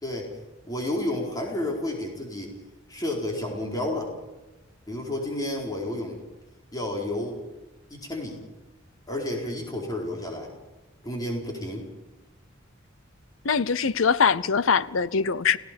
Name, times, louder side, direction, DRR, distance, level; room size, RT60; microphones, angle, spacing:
voice 1, 0.7-2.5 2.9-4.1 4.9-6.2 6.7-7.4 7.9-8.4 9.1-10.5 11.0-11.9, left 1 dB, 20° left, 4.4 m, -31 dB
voice 2, 13.4-15.6, left 5 dB, 70° left, 0.7 m, -22 dB
29.5 x 17.0 x 5.3 m
head